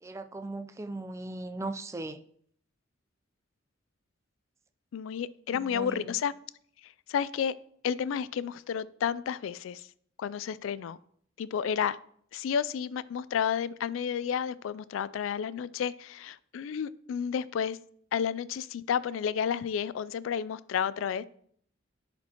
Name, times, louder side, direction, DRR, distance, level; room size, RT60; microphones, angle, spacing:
voice 1, 0.0-2.2 5.5-6.1, right 2 dB, 15° right, 9 dB, 0.3 m, -38 dB
voice 2, 4.9-6.3 6.8-7.5 7.8-9.9 10.2-11.0 11.4-12.0 12.3-17.8 18.1-21.2, left 7 dB, 85° left, 18 dB, 0.3 m, -31 dB
10.5 x 4.4 x 2.9 m, 0.63 s
head